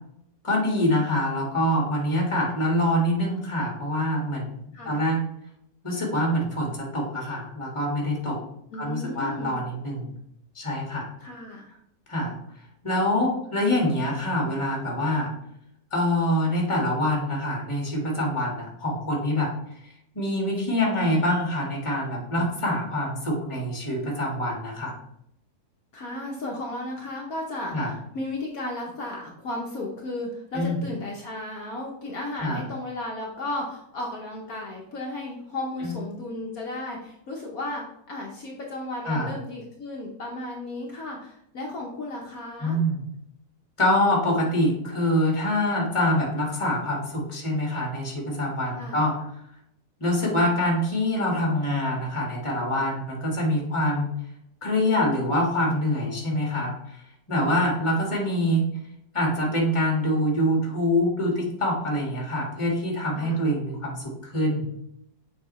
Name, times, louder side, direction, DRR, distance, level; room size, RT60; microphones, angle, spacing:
voice 1, 0.4-4.6 4.8-5.2 5.8-8.4 8.8-10.1 10.5-11.1 12.1-12.3 12.8-15.3 15.9-19.5 20.1-24.9 27.7-27.9 30.5-30.8 32.4-32.6 35.8-35.9 39.0-39.3 42.6-43.0 43.8-49.1 50.0-54.1 54.6-56.7 57.3-58.6 59.1-64.7, left 1 dB, 20° left, -1 dB, 1.6 m, -25 dB
voice 2, 4.7-5.1 8.7-9.5 11.2-11.8 25.9-42.8 48.7-49.1 57.4-57.7 63.2-63.5, left 1 dB, 65° left, -1 dB, 1.3 m, -34 dB
7.0 x 4.5 x 3.1 m, 0.77 s
omnidirectional pair, 1.7 m